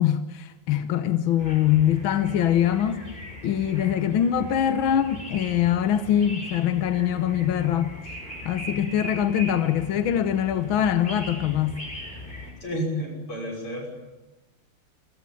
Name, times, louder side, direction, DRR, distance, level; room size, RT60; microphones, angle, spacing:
voice 1, 0.0-3.0 3.4-7.9 8.4-11.8, left 10 dB, 70° left, 1.7 m, -23 dB
sound 1, 1.4-12.5, left 1 dB, 20° left, 6.0 m, -39 dB
voice 2, 12.2-13.9, equal, 90° left, 7.0 m, -32 dB
28.5 x 16.0 x 8.7 m
omnidirectional pair, 2.4 m